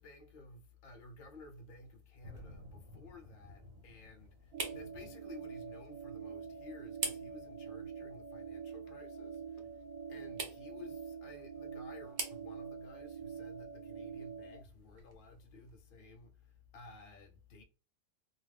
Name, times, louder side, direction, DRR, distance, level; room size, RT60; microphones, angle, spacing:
voice 1, 0.0-17.6, left 2 dB, 60° left, 0.5 m, -54 dB
sound 1, 1.0-15.8, right 3 dB, 50° right, 0.6 m, -49 dB
sound 2, 2.2-16.0, left 2 dB, 65° right, 1.1 m, -61 dB
sound 3, 4.5-14.6, right 6 dB, 85° right, 1.1 m, -46 dB
2.4 x 2.3 x 3.3 m
omnidirectional pair, 1.6 m